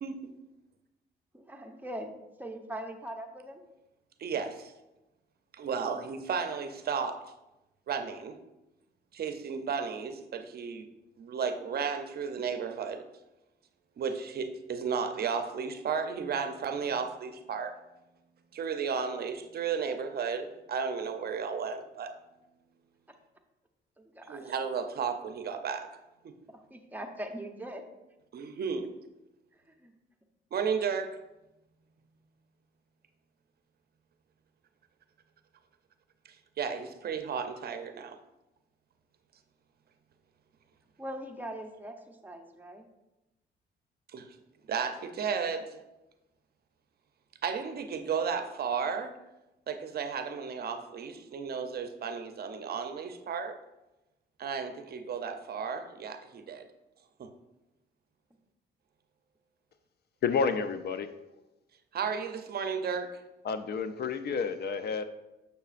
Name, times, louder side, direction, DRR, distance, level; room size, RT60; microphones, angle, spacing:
voice 1, 0.0-0.3 4.2-4.7 5.5-7.2 7.9-8.4 9.1-10.9 11.2-13.0 14.0-17.7 18.5-22.1 24.2-25.9 28.3-28.9 30.5-31.2 36.6-38.2 44.1-44.3 44.7-45.8 47.4-49.1 49.7-53.5 54.4-56.7 57.2-57.3 61.9-63.1, right 6 dB, 50° right, 8 dB, 0.6 m, -33 dB
voice 2, 1.3-3.6 24.0-24.5 26.5-27.8 29.5-29.9 41.0-42.9, right 1 dB, 10° right, 3 dB, 0.8 m, -41 dB
voice 3, 60.2-61.1 63.4-65.0, left 5 dB, 55° left, 10 dB, 0.5 m, -30 dB
6.7 x 6.6 x 2.5 m, 0.99 s
cardioid pair, 90°, 20 cm